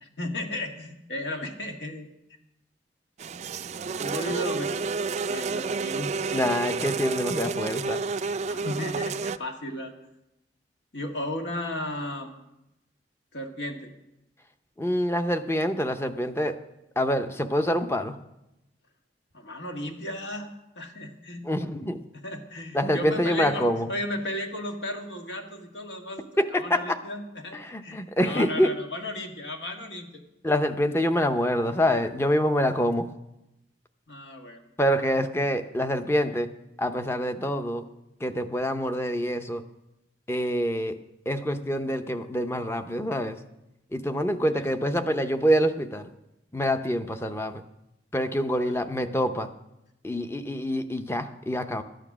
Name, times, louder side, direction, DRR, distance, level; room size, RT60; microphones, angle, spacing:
voice 1, 0.0-2.1 4.0-6.1 8.5-9.9 10.9-12.5 13.3-13.9 19.3-21.4 22.2-26.3 26.5-30.1 34.1-34.6 44.5-44.7 48.7-48.8, left 1 dB, 80° left, 3 dB, 1.7 m, -35 dB
sound 1, 3.2-9.4, right 4 dB, 40° right, 0.4 m, -30 dB
voice 2, 6.3-8.0 14.8-16.6 17.0-18.2 21.4-22.0 22.7-23.9 26.4-27.0 27.5-28.7 30.4-33.1 34.8-36.5 36.8-37.8 38.2-39.6 40.3-41.0 41.3-43.4 43.9-46.1 46.5-47.6 48.1-49.5 50.0-51.8, equal, 15° left, 8 dB, 0.6 m, -26 dB
13.0 x 9.1 x 6.1 m, 0.89 s
head